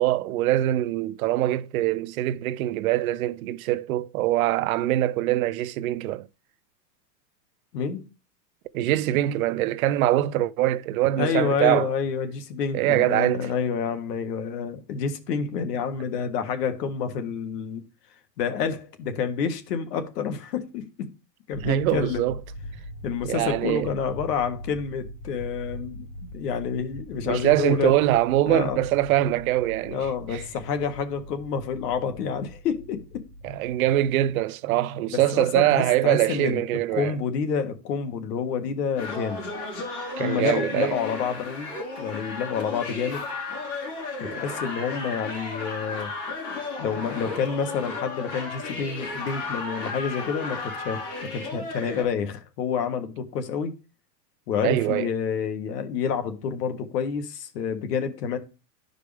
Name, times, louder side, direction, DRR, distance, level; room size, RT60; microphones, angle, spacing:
voice 1, 0.0-6.3 8.7-11.9 12.7-13.5 21.6-22.4 23.3-23.9 27.3-30.0 30.3-30.4 33.4-37.1 40.2-40.9 54.6-55.1, right 14 dB, 60° right, 0.6 m, -23 dB
voice 2, 7.7-8.1 11.2-17.8 18.4-21.1 21.5-22.2 23.0-27.9 28.5-28.8 29.8-33.0 35.3-36.6 36.9-39.4 40.2-41.7 42.0-43.3 44.2-46.1 46.8-53.7 54.5-58.4, left 6 dB, 75° left, 1.7 m, -28 dB
sound 1, 21.5-34.3, equal, 10° left, 0.8 m, -42 dB
sound 2, 39.0-52.0, left 3 dB, 35° left, 4.1 m, -34 dB
11.5 x 5.0 x 3.3 m
supercardioid pair, 160°, 49 cm